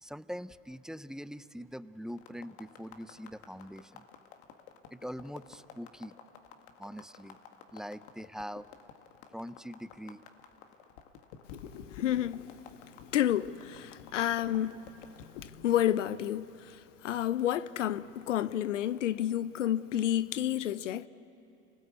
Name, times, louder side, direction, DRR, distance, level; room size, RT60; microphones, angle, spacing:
voice 1, 0.0-4.0 4.9-6.1 6.8-7.4 7.7-8.7 9.3-10.2, equal, ahead, 0.5 m, -43 dB
sound 1, 2.1-15.5, left 8 dB, 65° left, 2.0 m, -51 dB
voice 2, 11.9-12.6 13.1-14.8 15.2-21.1, left 11 dB, 80° left, 0.7 m, -30 dB
29.5 x 19.0 x 8.4 m
hypercardioid pair, 80°, 36 cm